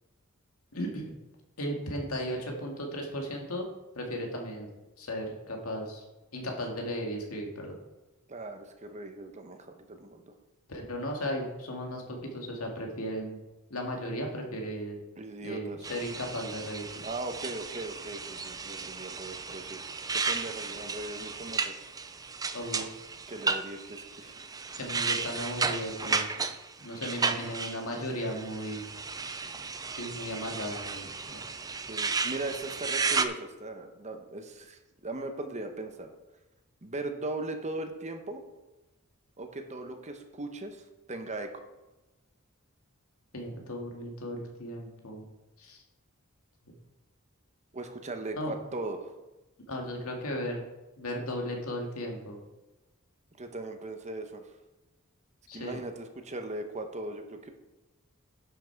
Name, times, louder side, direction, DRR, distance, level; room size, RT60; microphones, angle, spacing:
voice 1, 0.7-1.1 1.6-3.7 4.0-4.7 5.0-6.0 6.3-7.8 10.7-13.4 13.7-15.0 15.4-17.1 22.5-22.9 24.7-26.3 26.8-28.8 29.8-31.4 43.3-45.2 45.6-45.8 48.3-48.6 49.7-50.6 51.0-52.4 55.5-55.8, equal, 85° left, 1 dB, 2.0 m, -36 dB
voice 2, 8.3-10.3 15.2-15.9 17.0-19.8 20.1-21.7 23.3-24.4 31.9-36.1 36.8-38.4 39.4-41.6 47.7-49.1 53.3-54.5 55.5-57.5, right 2 dB, 35° right, 6 dB, 1.0 m, -39 dB
sound 1, 15.8-33.3, right 4 dB, 15° right, 0.5 m, -34 dB
11.0 x 6.0 x 4.6 m, 1.1 s
head